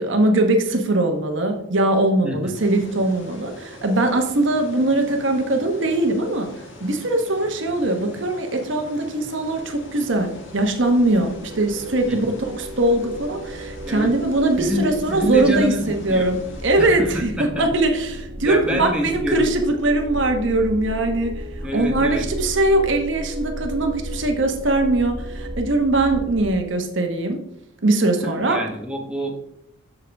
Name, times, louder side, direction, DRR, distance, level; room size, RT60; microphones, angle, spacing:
voice 1, 0.0-6.5 6.8-21.4 21.7-27.4 27.8-28.6, right 2 dB, 65° right, 4 dB, 1.1 m, -21 dB
voice 2, 2.2-2.5 12.1-12.2 13.8-14.1 14.6-16.3 16.8-17.6 18.4-19.5 21.6-22.3 28.2-29.4, equal, 5° right, 0 dB, 1.1 m, -27 dB
sound 1, 2.5-16.8, left 2 dB, 65° left, 1.9 m, -42 dB
sound 2, 9.5-26.5, equal, 40° right, 1.5 m, -36 dB
sound 3, 10.8-25.8, right 1 dB, 80° right, 1.4 m, -40 dB
13.0 x 5.3 x 3.4 m, 0.79 s
head